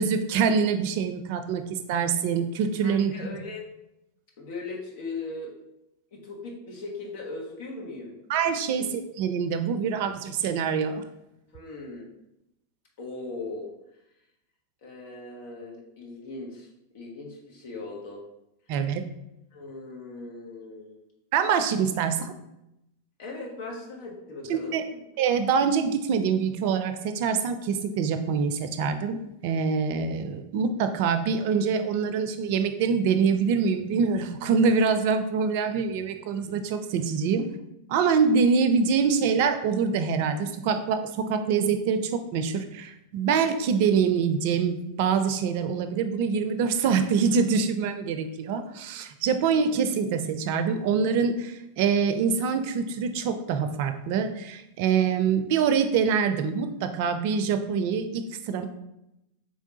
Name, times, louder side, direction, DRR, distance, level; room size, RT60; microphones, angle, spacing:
voice 1, 0.0-3.1 8.3-11.0 18.7-19.1 21.3-22.3 24.5-24.8 25.2-37.5 37.9-58.7, right 6 dB, 55° right, 9 dB, 0.4 m, -25 dB
voice 2, 2.8-3.7 4.4-5.5 6.1-8.2 8.7-8.8 11.5-12.1 13.0-13.7 14.8-16.7 16.9-18.2 19.5-21.0 23.2-25.0, left 3 dB, 60° left, -1 dB, 1.3 m, -39 dB
4.5 x 3.4 x 2.8 m, 0.86 s
hypercardioid pair, 95°, 0 cm